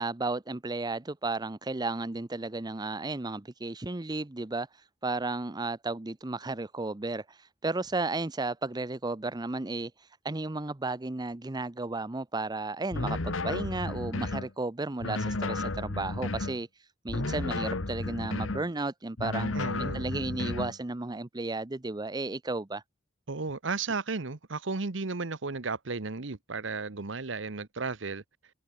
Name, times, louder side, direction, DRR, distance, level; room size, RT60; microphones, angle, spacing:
voice 1, 0.0-19.5 19.8-22.8, right 2 dB, 20° right, 0.7 m, -34 dB
sound 1, 12.9-14.5 15.0-16.6 17.1-18.7 19.2-20.8, left 2 dB, 85° left, 1.4 m, -33 dB
voice 2, 19.5-20.1 23.3-28.2, right 4 dB, 65° right, 1.1 m, -34 dB
head